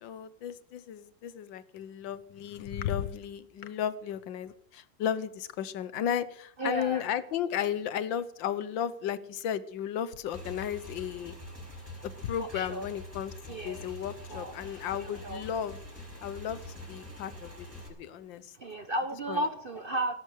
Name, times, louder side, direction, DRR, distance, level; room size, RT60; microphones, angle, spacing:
voice 1, 0.0-11.3 12.0-13.3 13.6-15.8 16.2-18.5 19.3-19.4, left 9 dB, 80° left, 15 dB, 1.6 m, -34 dB
voice 2, 6.6-7.1 12.4-12.9 13.5-14.0 14.3-15.5 18.5-20.1, right 1 dB, 40° right, 9 dB, 0.8 m, -34 dB
Motorcycle / Engine, 10.3-17.9, left 1 dB, 5° right, 5.4 m, -45 dB
18.0 x 11.0 x 6.5 m, 0.67 s
omnidirectional pair, 2.0 m